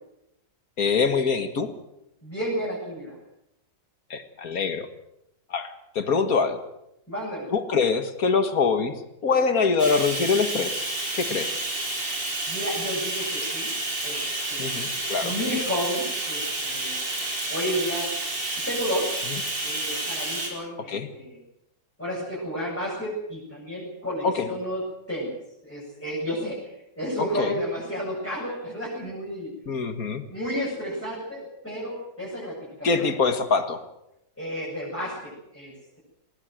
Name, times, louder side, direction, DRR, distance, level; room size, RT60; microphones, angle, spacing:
voice 1, 0.8-1.7 4.1-4.9 5.5-6.6 7.5-9.0 9.2-10.8 11.2-11.6 14.6-15.3 19.3-19.4 20.9-21.1 24.2-24.5 27.3-27.6 29.7-30.2 32.8-33.8, left 5 dB, 55° left, 9 dB, 2.1 m, -24 dB
voice 2, 2.2-3.2 7.1-7.5 12.5-13.7 14.0-14.8 15.2-17.0 17.5-18.1 18.6-19.1 19.6-21.4 22.0-24.8 25.1-25.3 25.6-26.7 27.0-29.5 30.3-33.1 34.4-36.0, equal, 5° left, -6 dB, 8.0 m, -32 dB
Bathtub (filling or washing), 9.8-20.5, right 2 dB, 80° right, 5.4 m, -30 dB
20.0 x 19.0 x 7.8 m, 0.83 s
omnidirectional pair, 1.9 m